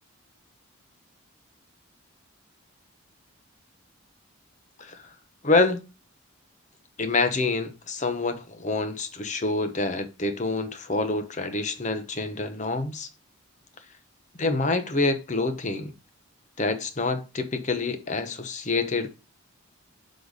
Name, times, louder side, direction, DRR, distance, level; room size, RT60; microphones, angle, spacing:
voice 1, 5.4-5.8 7.0-13.1 14.4-15.9 16.6-19.1, left 3 dB, 35° left, 0.8 m, -27 dB
6.5 x 4.1 x 4.9 m
head